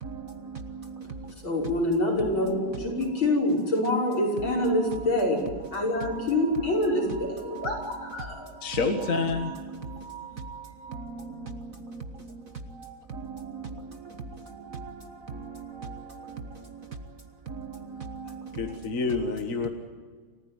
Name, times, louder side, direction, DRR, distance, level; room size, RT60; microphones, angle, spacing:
voice 1, 0.0-1.3 9.9-10.0 10.4-10.5 10.9-12.3 13.1-16.9 17.5-18.6, right 4 dB, 45° right, 8 dB, 1.5 m, -40 dB
voice 2, 1.4-8.5, left 1 dB, 65° left, -1 dB, 6.6 m, -26 dB
sound 1, 3.0-11.2 12.4-13.7 14.4-16.4 17.6-19.0, right 8 dB, 10° right, 7.8 m, -48 dB
voice 3, 8.6-9.5 18.5-19.7, left 4 dB, 40° left, 5 dB, 1.8 m, -28 dB
28.5 x 15.0 x 9.7 m, 1.5 s
omnidirectional pair, 2.3 m